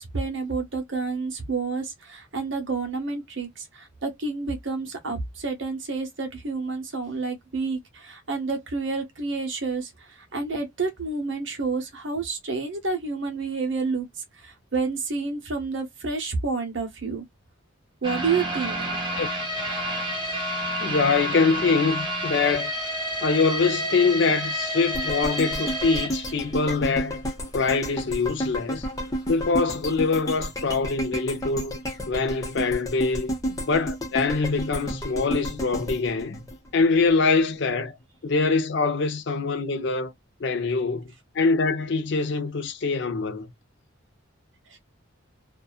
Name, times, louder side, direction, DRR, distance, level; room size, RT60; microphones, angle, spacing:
voice 1, 0.0-14.1 14.4-17.2 18.0-18.8 44.7-44.8, right 4 dB, 65° right, 1.0 m, -29 dB
sound 1, 18.0-27.0 27.4-27.5 28.0-28.1, equal, 25° right, 1.1 m, -29 dB
voice 2, 20.8-22.7 23.2-27.2 27.5-28.9 29.3-31.8 32.1-33.3 33.7-36.4 36.7-38.0 38.2-40.1 40.4-41.1 41.3-43.5, left 4 dB, 60° left, 0.5 m, -24 dB
sound 2, 24.9-37.1 37.5-37.6, equal, 15° left, 0.8 m, -32 dB
2.7 x 2.3 x 2.3 m
head